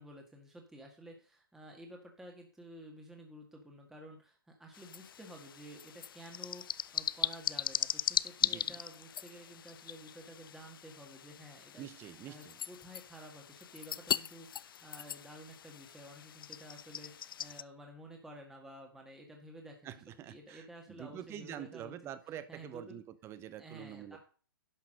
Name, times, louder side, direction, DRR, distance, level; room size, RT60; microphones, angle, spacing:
voice 1, 0.0-11.9 12.3-20.0 20.2-21.9 22.5-23.0 23.6-24.2, equal, 5° right, 1 dB, 1.7 m, -52 dB
sound 1, 4.7-17.6, left 9 dB, 65° left, 0.5 m, -39 dB
voice 2, 8.4-8.8 11.8-12.6 19.8-24.2, right 11 dB, 20° right, 14 dB, 0.9 m, -46 dB
11.0 x 5.8 x 6.4 m, 0.39 s
hypercardioid pair, 140°, 12 cm